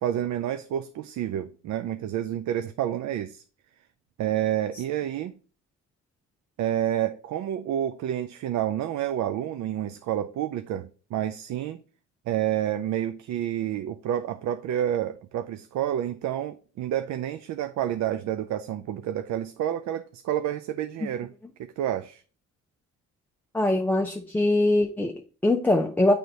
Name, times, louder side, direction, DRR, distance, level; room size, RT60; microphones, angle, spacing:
voice 1, 0.0-3.4 4.2-5.3 6.6-11.8 12.3-21.3 21.6-22.2, right 11 dB, 65° right, 0.5 m, -29 dB
voice 2, 23.5-26.1, left 2 dB, 5° left, 0.5 m, -23 dB
7.8 x 3.4 x 4.0 m
cardioid pair, 90°, 30 cm